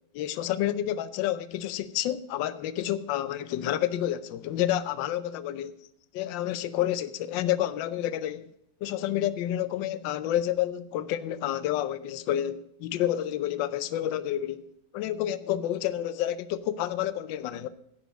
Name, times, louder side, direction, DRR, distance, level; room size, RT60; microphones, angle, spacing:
voice 1, 0.1-5.7 6.1-8.5 8.8-14.6 14.9-17.7, left 12 dB, 75° left, 1.3 m, -29 dB
11.0 x 9.2 x 5.1 m
omnidirectional pair, 2.2 m